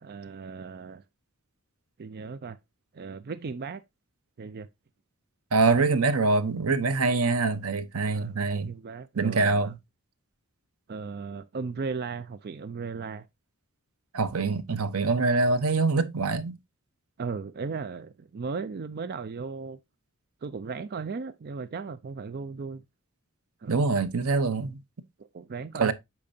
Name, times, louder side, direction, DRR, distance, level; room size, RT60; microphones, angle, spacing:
voice 1, 0.0-1.0 2.0-2.6 2.9-3.8 4.4-4.7 8.1-9.7 10.9-13.3 17.2-19.8 20.4-22.8 23.6-23.7 25.2-25.9, right 5 dB, 45° right, 0.4 m, -36 dB
voice 2, 5.5-8.7 9.2-9.8 14.1-16.6 23.7-24.8 25.7-25.9, right 3 dB, 85° right, 0.8 m, -24 dB
8.5 x 5.8 x 2.6 m
head